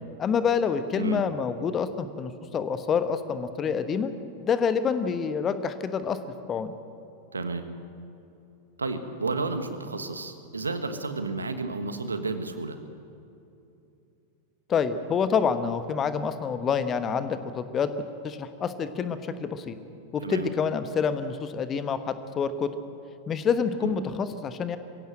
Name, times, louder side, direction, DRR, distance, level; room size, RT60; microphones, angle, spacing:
voice 1, 0.2-4.1 4.4-6.2 6.5-6.7 14.7-17.9 18.2-19.7 20.1-22.7 23.3-24.8, left 6 dB, 25° left, 11 dB, 1.2 m, -27 dB
voice 2, 7.3-7.7 8.8-12.8 20.2-20.5 23.8-23.9, right 3 dB, 75° right, 9 dB, 1.4 m, -31 dB
23.0 x 16.5 x 7.8 m, 2.8 s
figure-of-eight pair, 90°, 0 cm